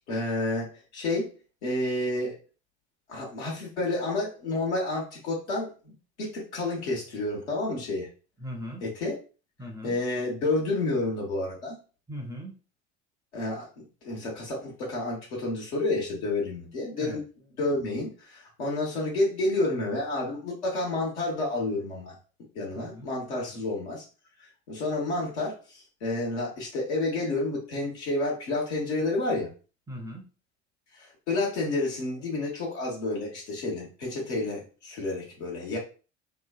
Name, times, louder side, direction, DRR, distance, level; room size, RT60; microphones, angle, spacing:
voice 1, 0.0-1.3 1.6-2.4 3.1-5.9 6.2-8.1 8.8-9.1 9.8-11.8 13.3-17.2 17.6-22.1 22.5-24.0 24.7-29.5 30.9-35.8, left 2 dB, 70° left, -3 dB, 1.2 m, -30 dB
voice 2, 8.4-8.8 9.6-10.0 12.1-12.6 17.0-17.2 22.7-23.1 23.4-23.6 29.9-30.2, equal, 10° right, 2 dB, 0.6 m, -39 dB
3.0 x 2.2 x 2.4 m, 0.35 s
figure-of-eight pair, 60°, 35 cm